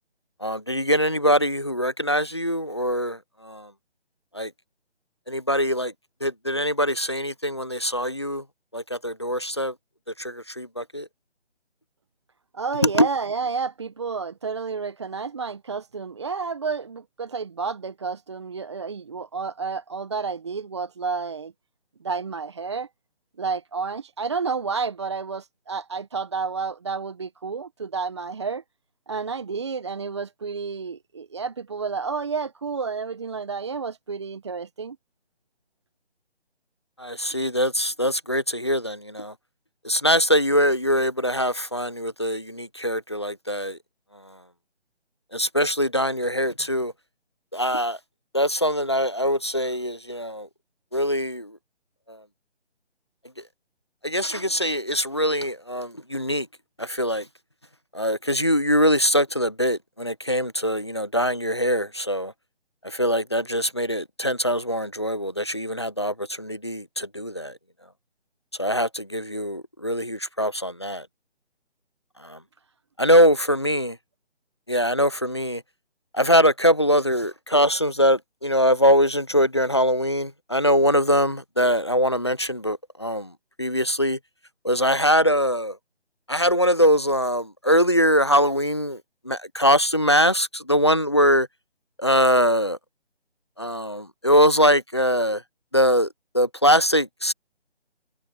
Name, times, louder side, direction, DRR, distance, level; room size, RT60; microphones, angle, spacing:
voice 1, 0.4-3.7 4.3-4.5 5.3-5.9 6.2-8.4 8.7-9.7 10.2-11.1 12.8-13.1 37.0-39.3 39.8-43.8 45.3-46.9 47.5-48.0 48.3-50.5 50.9-51.6 52.1-52.2 54.0-56.5 56.8-57.3 57.9-62.3 62.8-67.6 68.6-71.1 72.2-72.4 73.0-74.0 74.7-75.6 76.1-83.3 83.6-84.2 84.6-85.8 86.3-91.5 92.0-92.8 93.6-95.4 95.7-96.1 96.3-97.3, equal, 25° left, 0.5 m, -22 dB
voice 2, 12.5-21.5 22.0-22.9 23.4-28.6 29.1-35.0, right 5 dB, 25° right, 0.9 m, -30 dB
figure-of-eight pair, 165°, 34 cm